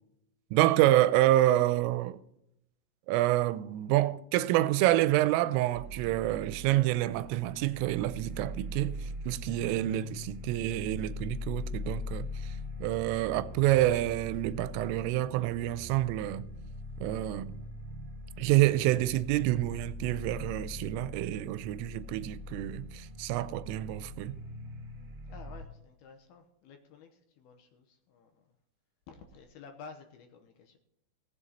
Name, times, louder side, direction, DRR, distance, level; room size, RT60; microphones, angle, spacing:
voice 1, 0.5-2.2 3.1-12.5 12.8-16.5 17.0-17.5 18.4-24.4, right 15 dB, 90° right, 3.2 m, -28 dB
sound 1, 5.7-25.6, left 1 dB, 65° right, 2.7 m, -41 dB
voice 2, 25.3-28.5 29.1-30.8, left 5 dB, 70° left, 2.5 m, -52 dB
18.5 x 7.6 x 4.1 m
omnidirectional pair, 5.7 m